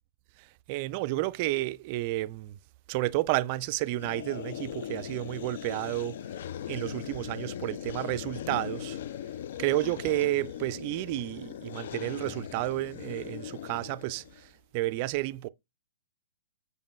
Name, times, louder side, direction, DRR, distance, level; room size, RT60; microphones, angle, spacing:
voice 1, 0.4-2.6 2.9-6.2 6.7-9.0 9.6-15.5, right 17 dB, 35° right, 0.3 m, -31 dB
sound 1, 4.0-14.4, left 10 dB, 50° left, 0.3 m, -39 dB
7.1 x 4.8 x 3.1 m
figure-of-eight pair, 115°, 0 cm